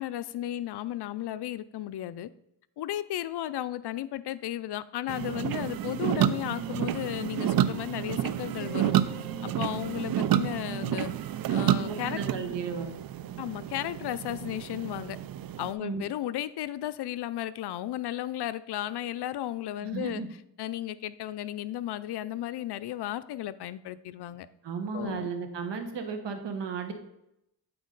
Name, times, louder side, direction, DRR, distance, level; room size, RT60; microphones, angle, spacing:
voice 1, 0.0-2.3 2.8-8.9 9.4-11.1 11.5-12.5 13.4-15.2 15.6-20.2 20.6-24.5 24.9-25.3, left 13 dB, 65° left, 14 dB, 0.5 m, -34 dB
sound 1, 5.1-15.7, right 11 dB, 55° right, 0.5 m, -30 dB
Mallet percussion, 8.6-11.1, equal, 20° left, 1.1 m, -50 dB
voice 2, 11.7-12.9 15.8-16.0 19.8-20.3 24.6-26.9, right 5 dB, 75° right, 6 dB, 1.2 m, -34 dB
8.6 x 4.4 x 3.9 m, 0.81 s
cardioid pair, 80°, 43 cm